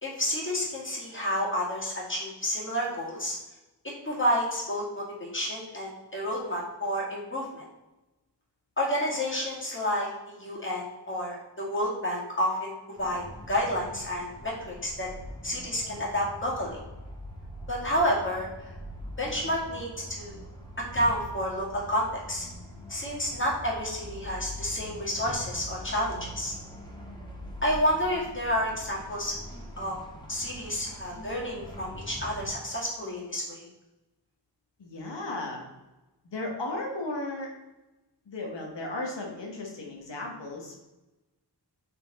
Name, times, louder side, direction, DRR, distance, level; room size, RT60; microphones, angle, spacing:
voice 1, 0.0-3.4 4.0-7.6 8.8-15.1 15.4-16.8 17.7-18.7 19.2-20.4 20.9-22.5 22.9-26.5 27.6-29.4 29.8-30.0 30.3-33.7, equal, 30° left, -4 dB, 2.0 m, -30 dB
sound 1, 13.0-32.5, equal, 10° left, 1.4 m, -43 dB
voice 2, 34.8-35.6 36.3-37.5 38.3-40.8, left 2 dB, 90° left, -1 dB, 1.3 m, -35 dB
5.9 x 4.5 x 4.1 m, 1.0 s
wide cardioid pair, 95°, 42 cm